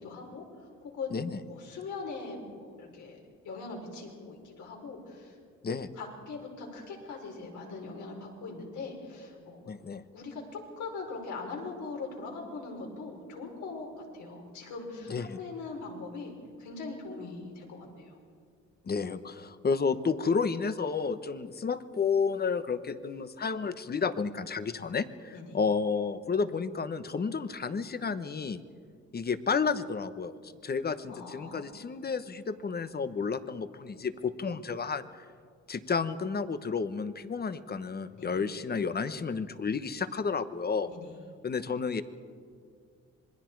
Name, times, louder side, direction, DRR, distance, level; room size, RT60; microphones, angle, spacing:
voice 1, 0.0-0.4 0.8-1.2 1.5-3.2 3.4-5.3 6.0-9.7 10.1-18.2 25.3-25.5 31.1-31.7 38.2-38.4 40.9-41.1, left 4 dB, 70° left, 0 dB, 5.1 m, -41 dB
voice 2, 9.7-10.0 15.1-15.4 18.9-28.6 29.1-30.3 30.6-35.2 35.7-40.9 41.4-42.0, left 5 dB, 30° left, 12 dB, 1.1 m, -31 dB
26.5 x 21.0 x 4.7 m, 2.1 s
cardioid pair, 90°, 30 cm